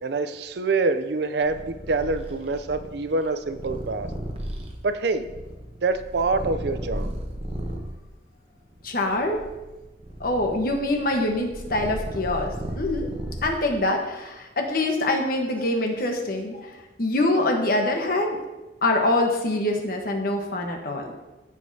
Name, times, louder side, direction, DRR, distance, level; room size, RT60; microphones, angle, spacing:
voice 1, 0.0-4.1 4.8-5.3 5.8-7.1, right 3 dB, 60° right, 11 dB, 0.5 m, -26 dB
Purr, 1.5-7.9 8.6-13.8, right 1 dB, 30° right, 1.0 m, -35 dB
voice 2, 8.8-9.4 10.2-13.1 13.4-16.7 17.0-18.4 18.8-21.0, left 2 dB, 50° left, 2 dB, 1.2 m, -24 dB
15.0 x 5.1 x 2.8 m, 1.1 s
head